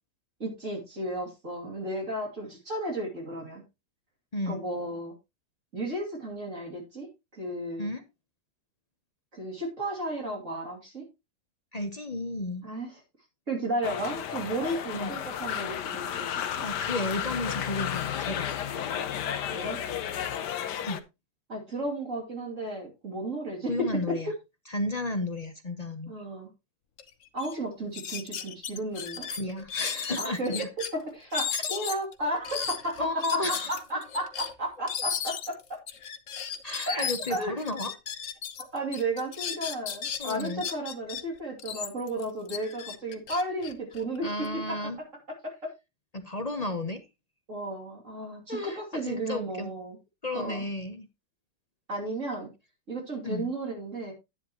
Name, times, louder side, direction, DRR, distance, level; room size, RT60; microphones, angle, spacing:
voice 1, 0.4-3.6 4.5-5.1 5.7-7.9 9.3-11.0 12.6-12.9 13.5-16.7 19.5-19.8 21.5-24.0 26.1-26.5 27.3-29.3 30.2-30.5 30.9-35.8 36.9-37.5 38.7-44.8 45.4-45.7 47.5-50.0 50.3-50.6 51.9-52.5 52.9-54.1, right 1 dB, 45° right, 0 dB, 3.0 m, -33 dB
voice 2, 4.3-4.6 7.8-8.0 11.7-12.7 14.9-15.1 16.6-18.5 20.9-21.0 23.7-24.3 24.7-26.1 29.3-30.7 31.5-31.6 33.0-33.7 36.6-37.9 40.2-40.6 44.2-45.0 46.1-47.0 48.5-49.7 50.2-51.1 53.2-53.5, left 2 dB, 35° left, 8 dB, 0.6 m, -33 dB
sound 1, 13.8-21.0, left 9 dB, 70° left, 1.4 m, -33 dB
sound 2, 27.0-27.1 27.4-27.6 27.9-30.9 31.3-38.6 38.9-41.2 41.6-44.5, left 8 dB, 55° left, 1.1 m, -35 dB
10.5 x 9.8 x 2.9 m, 0.23 s
omnidirectional pair, 1.9 m